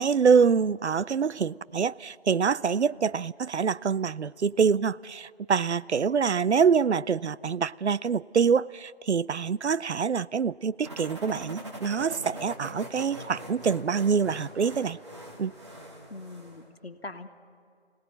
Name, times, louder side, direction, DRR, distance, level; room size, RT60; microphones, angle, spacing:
voice 1, 0.0-15.0 15.4-15.5, right 6 dB, 90° right, 0.5 m, -25 dB
sound 1, 10.8-16.7, equal, 25° right, 2.2 m, -42 dB
voice 2, 16.1-17.3, left 2 dB, 65° left, 1.6 m, -42 dB
24.5 x 18.0 x 9.2 m
figure-of-eight pair, 165°, 33 cm